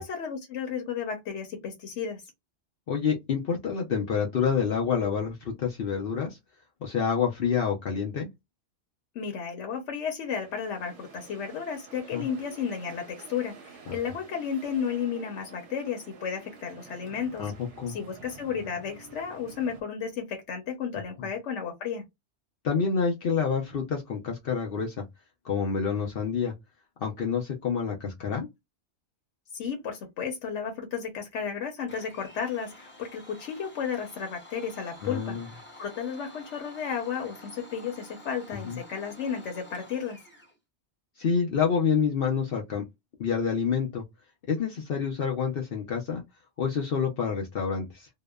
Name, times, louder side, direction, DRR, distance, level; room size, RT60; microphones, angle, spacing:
voice 1, 0.0-2.2 9.1-17.5 17.9-22.0 29.5-40.2, left 7 dB, 85° left, 1.0 m, -33 dB
voice 2, 2.9-6.4 6.8-8.3 12.1-12.2 13.9-14.0 17.4-18.0 21.2-21.3 22.6-24.9 25.4-26.5 27.0-28.5 35.0-35.5 38.6-38.8 41.2-42.8 43.2-44.0 44.5-46.2 46.6-48.1, left 6 dB, 60° left, 0.8 m, -28 dB
sound 1, 10.2-19.8, right 4 dB, 90° right, 1.1 m, -49 dB
Domestic sounds home sounds, 31.9-40.5, equal, 15° left, 0.5 m, -50 dB
2.8 x 2.1 x 2.2 m
omnidirectional pair, 1.2 m